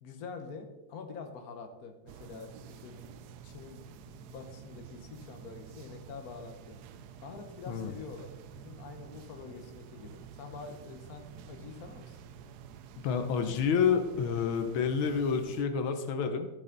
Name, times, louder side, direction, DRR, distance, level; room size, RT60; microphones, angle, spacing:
voice 1, 0.0-2.5 2.8-3.1 3.4-6.8 7.2-12.2, left 5 dB, 50° left, 5 dB, 1.5 m, -46 dB
sound 1, 2.1-15.6, right 8 dB, 75° right, 0.9 m, -50 dB
voice 2, 13.0-16.5, left 6 dB, 85° left, 8 dB, 1.7 m, -29 dB
13.0 x 7.2 x 3.9 m, 1.0 s
omnidirectional pair, 2.2 m